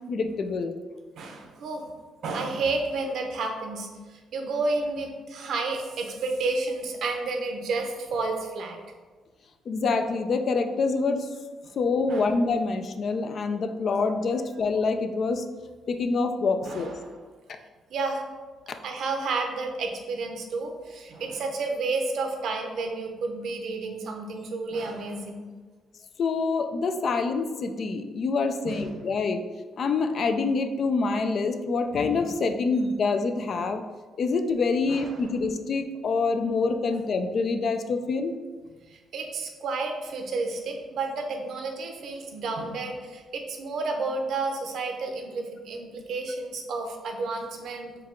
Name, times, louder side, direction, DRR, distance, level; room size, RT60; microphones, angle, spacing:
voice 1, 0.1-0.7 9.7-11.3 11.8-15.4 15.9-16.9 26.2-29.4 29.8-33.8 34.2-38.3, left 4 dB, 55° left, 6 dB, 0.3 m, -26 dB
voice 2, 1.2-1.9 2.2-8.8 11.6-11.7 12.1-12.3 16.6-17.2 17.9-18.2 18.8-25.4 28.6-29.2 34.9-35.3 38.9-48.1, right 3 dB, 70° right, 3 dB, 0.6 m, -31 dB
4.6 x 2.3 x 3.6 m, 1.3 s
cardioid pair, 90°, 0 cm